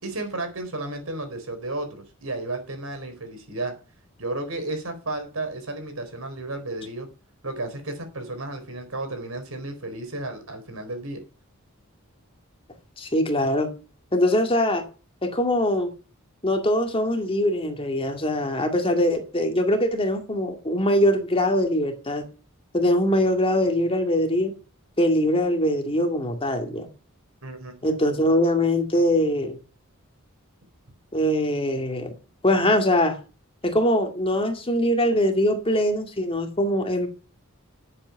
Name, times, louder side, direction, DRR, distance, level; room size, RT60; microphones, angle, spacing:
voice 1, 0.0-3.7 4.2-7.1 7.4-11.2 27.4-27.7, right 2 dB, 80° right, 4.2 m, -33 dB
voice 2, 13.0-13.7 14.1-14.8 15.2-15.9 16.4-22.3 22.7-24.5 25.0-26.9 27.8-29.6 31.1-32.1 32.4-33.2 33.6-37.1, left 1 dB, 25° left, 2.2 m, -22 dB
11.0 x 7.7 x 5.8 m
head